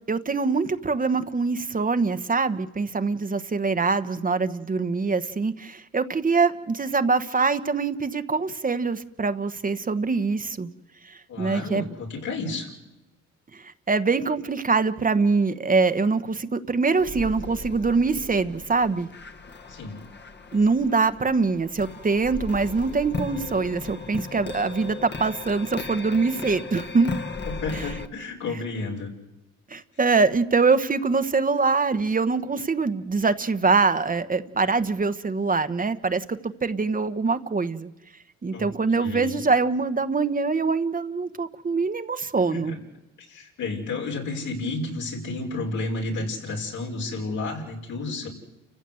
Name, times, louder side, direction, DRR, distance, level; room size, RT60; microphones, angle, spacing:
voice 1, 0.1-10.7 11.0-11.9 13.5-19.1 20.5-27.1 27.7-27.8 29.7-37.9 38.4-42.8, right 4 dB, 30° right, 10 dB, 1.1 m, -24 dB
voice 2, 11.3-12.7 19.7-20.0 27.4-29.1 38.5-38.7 39.0-39.4 42.4-42.8 43.3-48.3, left 3 dB, 75° left, 0 dB, 5.7 m, -31 dB
sound 1, 17.0-28.1, left 4 dB, 35° left, 1.5 m, -37 dB
29.5 x 15.5 x 7.9 m, 1.0 s
cardioid pair, 90°, 30 cm